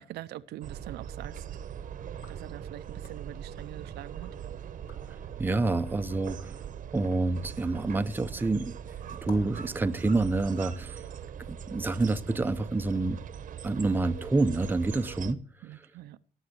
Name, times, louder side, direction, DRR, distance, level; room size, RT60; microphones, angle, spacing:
voice 1, 0.0-1.4 2.3-4.3 15.6-16.2, right 14 dB, 75° right, 0.7 m, -43 dB
sound 1, 0.6-15.3, right 8 dB, 50° right, 1.0 m, -41 dB
sound 2, 2.1-4.4 4.7-5.2 5.7-9.7, left 5 dB, 70° left, 4.2 m, -56 dB
voice 2, 5.4-6.6 6.9-8.8 9.1-11.0 11.5-13.2 13.6-15.4, right 2 dB, 10° right, 0.7 m, -28 dB
18.0 x 7.3 x 6.8 m
cardioid pair, 110°, 17 cm